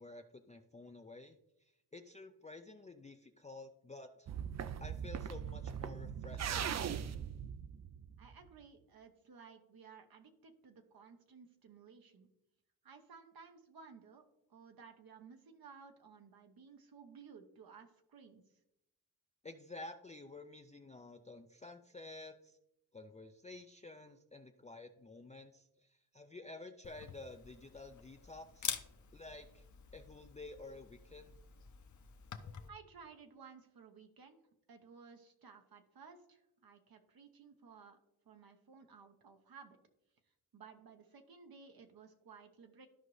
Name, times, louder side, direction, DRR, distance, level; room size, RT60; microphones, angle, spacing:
voice 1, 0.0-4.3 4.8-7.0 19.4-22.6 22.9-28.7 29.1-29.7 29.9-31.4, left 2 dB, 20° left, 6 dB, 0.4 m, -51 dB
sound 1, 4.3-8.5, right 8 dB, 45° right, 0.4 m, -40 dB
voice 2, 8.2-12.3 12.8-14.2 14.5-18.6 32.7-34.4 34.7-38.0 38.2-39.8 40.5-42.9, right 5 dB, 65° right, 5 dB, 0.9 m, -57 dB
Camera, 26.8-32.7, left 7 dB, 50° left, 0.7 m, -47 dB
13.5 x 5.1 x 3.2 m, 0.84 s
wide cardioid pair, 110°, 39 cm